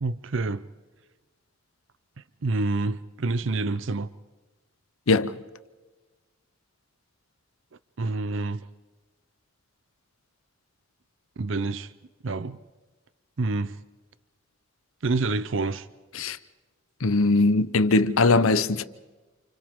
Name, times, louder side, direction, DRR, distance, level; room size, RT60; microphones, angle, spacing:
voice 1, 0.0-0.6 2.4-4.1 8.0-8.6 11.4-11.9 12.2-12.6 13.4-13.8 15.0-15.9, right 3 dB, 65° right, 0.6 m, -27 dB
voice 2, 17.0-18.8, left 3 dB, 85° left, 0.8 m, -20 dB
30.0 x 28.0 x 3.7 m
head